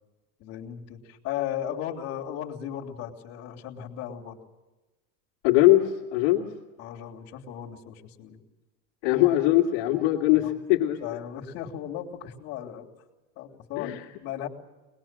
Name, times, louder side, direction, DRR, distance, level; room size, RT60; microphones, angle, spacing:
voice 1, 0.4-4.4 6.8-8.4 10.4-10.5 11.0-12.9 13.3-14.5, left 10 dB, 40° left, -2 dB, 3.2 m, -36 dB
voice 2, 5.4-6.5 9.0-11.0 13.8-14.0, left 15 dB, 55° left, -3 dB, 2.5 m, -21 dB
24.0 x 21.0 x 7.5 m, 1.1 s
supercardioid pair, 150°, 36 cm